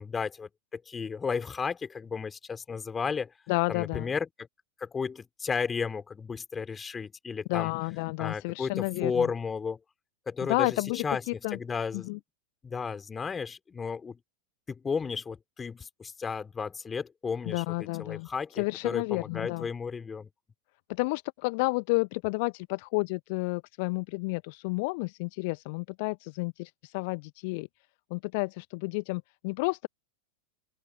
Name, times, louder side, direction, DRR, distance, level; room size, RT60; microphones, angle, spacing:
voice 1, 0.0-3.3 3.7-4.5 4.8-7.7 8.2-9.8 10.3-10.7 11.0-11.2 11.5-12.2 12.6-14.2 14.7-20.3, left 5 dB, 15° left, 5.4 m, -33 dB
voice 2, 3.5-4.1 7.5-9.3 10.4-11.6 11.9-12.2 17.4-18.3 18.5-19.7 20.9-27.7 28.1-29.9, left 28 dB, 45° left, 1.0 m, -31 dB
open air
figure-of-eight pair, 90°, 0 cm